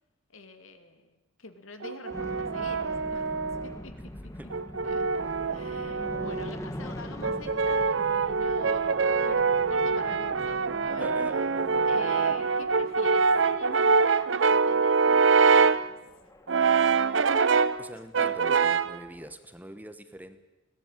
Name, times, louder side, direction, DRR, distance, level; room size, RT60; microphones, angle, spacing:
voice 1, 0.3-3.3 3.6-4.1 4.8-5.0 5.4-11.1 11.8-15.9, left 3 dB, 85° left, 7 dB, 2.4 m, -46 dB
Brass instrument, 1.8-3.8 4.5-6.6 7.2-15.9 16.5-17.8 18.1-19.0, right 5 dB, 65° right, 0.7 m, -24 dB
sound 1, 2.1-19.3, equal, 15° left, 1.6 m, -44 dB
voice 2, 11.0-11.4 17.8-20.4, right 1 dB, 10° right, 10 dB, 1.1 m, -43 dB
21.0 x 17.5 x 9.1 m, 1.0 s
head